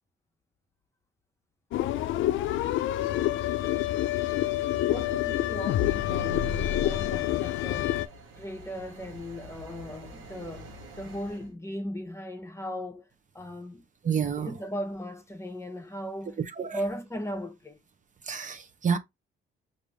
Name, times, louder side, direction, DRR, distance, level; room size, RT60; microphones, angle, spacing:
sound 1, 1.7-8.1, left 13 dB, 75° left, 0.4 m, -27 dB
voice 1, 4.9-8.0 8.4-13.8 14.4-17.8, equal, 15° left, 0.8 m, -37 dB
sound 2, 6.8-11.5, right 1 dB, 90° right, 1.0 m, -48 dB
voice 2, 14.0-14.5 16.6-16.8 18.2-19.0, right 7 dB, 40° right, 0.6 m, -28 dB
4.9 x 2.6 x 3.2 m
cardioid pair, 90°, 20 cm